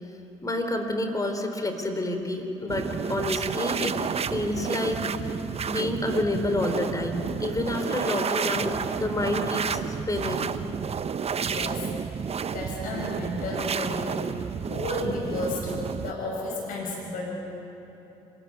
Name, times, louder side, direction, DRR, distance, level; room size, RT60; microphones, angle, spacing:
voice 1, 0.4-4.0 4.3-5.0 5.7-9.8 10.1-10.5, left 1 dB, 25° left, 5 dB, 3.9 m, -28 dB
sound 1, 2.7-16.1, right 6 dB, 45° right, 0.9 m, -31 dB
voice 2, 11.5-11.9 12.5-14.1 14.4-15.7 16.0-17.4, left 2 dB, 65° left, -3 dB, 6.1 m, -32 dB
26.0 x 14.0 x 9.5 m, 3.0 s
hypercardioid pair, 55°, 15 cm